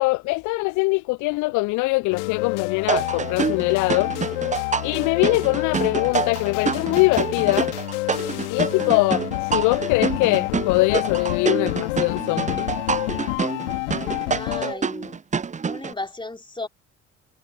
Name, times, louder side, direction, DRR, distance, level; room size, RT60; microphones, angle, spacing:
voice 1, 0.0-4.1 4.8-7.7 8.5-12.6, left 24 dB, 55° left, 0.7 m, -22 dB
sound 1, 2.1-14.7, left 22 dB, 70° left, 3.7 m, -28 dB
sound 2, 2.9-15.9, right 5 dB, 20° right, 0.9 m, -27 dB
voice 2, 14.3-15.2 15.6-16.7, left 2 dB, 15° left, 3.4 m, -34 dB
figure-of-eight pair, 50°, 37 cm